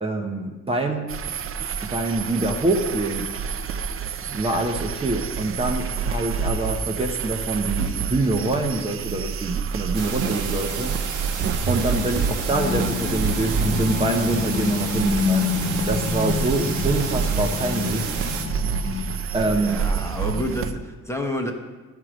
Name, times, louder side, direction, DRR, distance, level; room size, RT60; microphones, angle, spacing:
voice 1, 0.0-1.0 1.9-3.2 4.3-10.9 11.7-15.5 15.9-18.0 19.3-19.8, right 2 dB, 20° right, 1 dB, 1.0 m, -25 dB
sound 1, 1.1-20.7, right 6 dB, 45° right, 0.5 m, -28 dB
sound 2, 9.9-18.4, right 5 dB, 85° right, 1.2 m, -31 dB
sound 3, 12.5-19.2, left 4 dB, 35° left, 1.1 m, -27 dB
voice 2, 19.4-21.5, left 1 dB, 10° left, 2 dB, 1.1 m, -29 dB
13.0 x 4.8 x 5.1 m, 1.2 s
cardioid pair, 90°, 30 cm